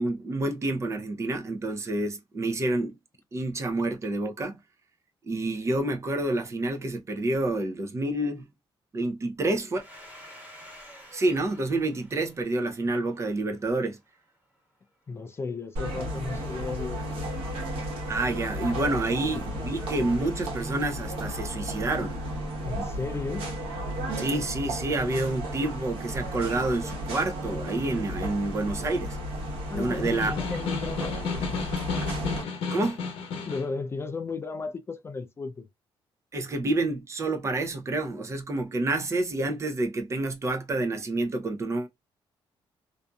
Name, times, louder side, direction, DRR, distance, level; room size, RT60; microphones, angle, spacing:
voice 1, 0.0-3.0 3.3-4.6 5.2-8.5 8.9-9.8 11.1-14.0 18.1-22.2 24.2-29.2 29.7-30.4 32.7-33.0 36.3-41.9, right 2 dB, 30° right, 0.6 m, -28 dB
Domestic sounds home sounds, 9.8-14.2, equal, 15° right, 1.2 m, -50 dB
voice 2, 15.1-17.3 19.1-19.7 22.6-23.5 29.7-31.6 33.5-35.7, left 4 dB, 25° left, 0.3 m, -35 dB
sound 1, 15.8-32.4, equal, 90° right, 1.1 m, -34 dB
Snare drum, 29.9-33.7, left 5 dB, 80° left, 0.9 m, -33 dB
2.6 x 2.5 x 2.2 m
cardioid pair, 120°, 10 cm